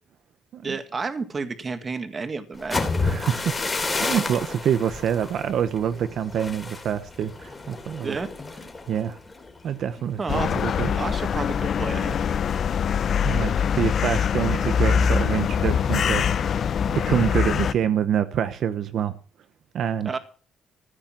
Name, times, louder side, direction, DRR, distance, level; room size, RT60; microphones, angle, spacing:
voice 1, 0.6-3.0 8.0-8.3 10.2-10.5 11.0-12.2 20.1-20.2, right 4 dB, 30° right, 1.9 m, -31 dB
sound 1, 2.5-10.4 10.8-11.1 11.4-11.9, left 3 dB, 20° left, 2.9 m, -31 dB
voice 2, 3.0-8.2 8.9-9.2 9.6-10.9 13.2-16.5 16.9-19.1 19.7-20.1, right 9 dB, 65° right, 1.0 m, -26 dB
sound 2, 10.3-17.7, left 7 dB, 50° left, 0.7 m, -23 dB
15.0 x 8.6 x 7.5 m
cardioid pair, 120°, 0 cm